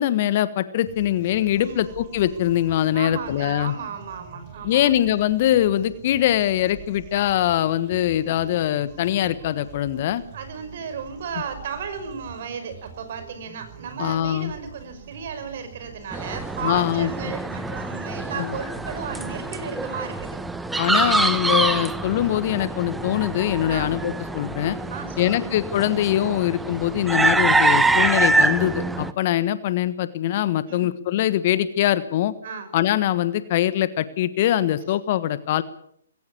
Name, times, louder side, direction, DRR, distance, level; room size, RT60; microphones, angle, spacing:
voice 1, 0.0-3.7 4.6-10.2 14.0-14.5 16.6-17.1 18.4-18.5 20.8-24.8 25.2-32.3 32.7-35.6, left 12 dB, 40° left, 15 dB, 1.3 m, -22 dB
sound 1, 0.9-20.0, right 7 dB, 30° right, 4.9 m, -44 dB
voice 2, 2.9-4.9 10.3-20.4 21.0-21.3 21.8-21.9 23.7-23.9 24.9-25.5 30.7-30.9 32.4-32.7, right 6 dB, 50° right, 9 dB, 5.5 m, -34 dB
sound 2, 16.1-29.1, right 3 dB, 5° right, 1.1 m, -25 dB
20.0 x 17.0 x 8.4 m, 0.68 s
figure-of-eight pair, 130°, 0 cm